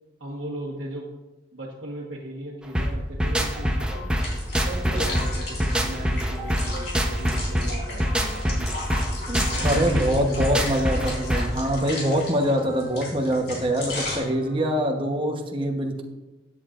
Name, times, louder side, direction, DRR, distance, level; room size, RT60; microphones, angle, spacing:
voice 1, 0.2-1.1 1.5-4.0 4.5-8.8 9.5-10.6, right 1 dB, 75° right, -5 dB, 1.5 m, -37 dB
sound 1, 2.7-11.6, equal, 5° right, 0.8 m, -25 dB
sound 2, 3.5-14.8, left 1 dB, 20° left, 2.2 m, -45 dB
sound 3, 4.2-14.2, left 2 dB, 60° left, 3.6 m, -36 dB
voice 2, 9.3-16.0, equal, 25° right, 2 dB, 1.1 m, -24 dB
15.0 x 9.2 x 2.5 m, 1.1 s
head